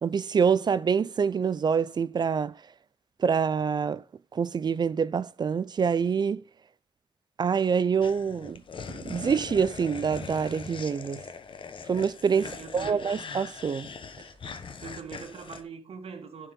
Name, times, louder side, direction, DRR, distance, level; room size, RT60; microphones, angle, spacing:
voice 1, 0.0-2.5 3.2-4.0 4.3-6.4 7.4-8.6 8.9-11.2 11.9-13.9, right 6 dB, 45° right, 0.4 m, -26 dB
sound 1, 8.0-15.6, left 5 dB, 60° left, 1.1 m, -41 dB
voice 2, 12.3-13.1 14.8-16.5, right 6 dB, 80° right, 1.6 m, -42 dB
11.0 x 4.7 x 5.2 m
wide cardioid pair, 110°, 10 cm